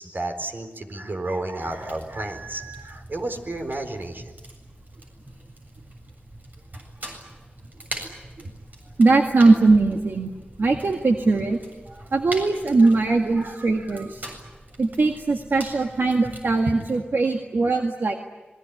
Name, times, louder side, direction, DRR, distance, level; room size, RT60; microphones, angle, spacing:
voice 1, 0.0-4.3 11.9-12.1 12.8-14.1, right 2 dB, 70° right, 5 dB, 4.3 m, -33 dB
Fire, 1.6-16.9, right 1 dB, 55° right, 7.4 m, -42 dB
voice 2, 9.0-11.6 12.1-14.3 14.8-18.1, right 3 dB, 90° right, 3 dB, 1.8 m, -20 dB
27.0 x 21.5 x 9.9 m, 1.2 s
wide cardioid pair, 55°, 4 cm